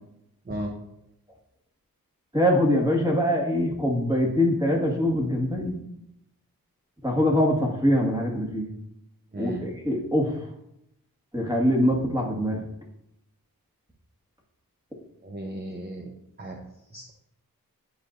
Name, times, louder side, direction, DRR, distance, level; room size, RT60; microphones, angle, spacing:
voice 1, 2.3-5.8 7.0-8.7 9.4-10.5 11.3-12.7, equal, 10° right, -1 dB, 1.8 m, -23 dB
voice 2, 9.3-9.7 15.2-16.1 16.4-16.6 16.9-17.1, right 1 dB, 25° right, 2 dB, 0.9 m, -35 dB
10.5 x 4.6 x 2.6 m, 0.81 s
cardioid pair, 50°, 37 cm